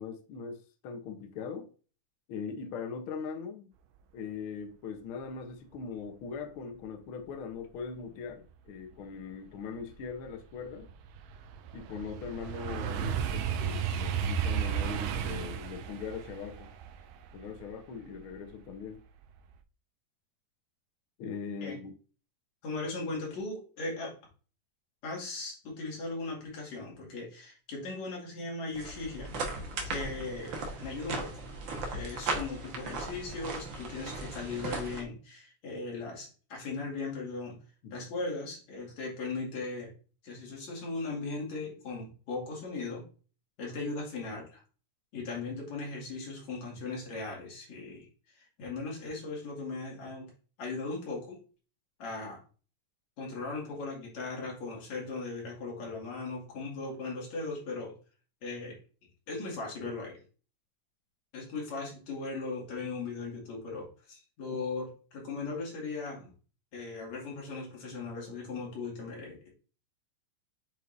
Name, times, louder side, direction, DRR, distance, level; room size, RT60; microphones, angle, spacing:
voice 1, 0.0-1.7 2.3-3.7 4.1-10.9 11.7-16.7 17.3-19.0 21.2-21.9 37.8-38.0, left 6 dB, 80° left, 1.2 m, -40 dB
sound 1, 9.1-9.2 9.7-18.7 19.1-19.5, right 8 dB, 90° right, 2.3 m, -34 dB
voice 2, 22.6-24.1 25.0-31.3 31.9-37.6 37.9-39.9 40.2-43.0 43.6-44.6 45.1-48.1 48.4-50.3 50.6-51.4 52.0-52.4 53.2-58.0 58.4-58.8 59.3-60.2 61.3-66.3 66.7-69.5, left 3 dB, 60° left, 3.5 m, -38 dB
sound 2, 28.7-35.0, right 3 dB, 65° right, 1.2 m, -37 dB
8.1 x 4.6 x 2.6 m
omnidirectional pair, 3.8 m